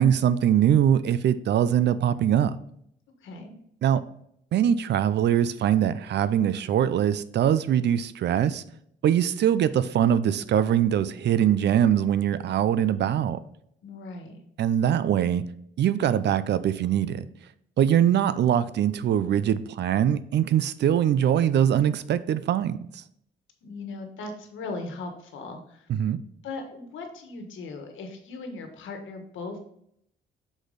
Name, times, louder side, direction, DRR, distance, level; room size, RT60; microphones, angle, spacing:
voice 1, 0.0-2.6 3.8-4.0 4.5-8.6 9.0-13.4 14.6-15.4 15.8-17.2 17.8-23.0 25.9-26.2, right 10 dB, 60° right, 15 dB, 0.5 m, -22 dB
voice 2, 3.2-3.5 13.8-14.4 23.6-25.9 26.4-29.6, left 3 dB, 75° left, 5 dB, 1.4 m, -38 dB
6.2 x 5.0 x 3.9 m, 0.71 s
cardioid pair, 90°, 20 cm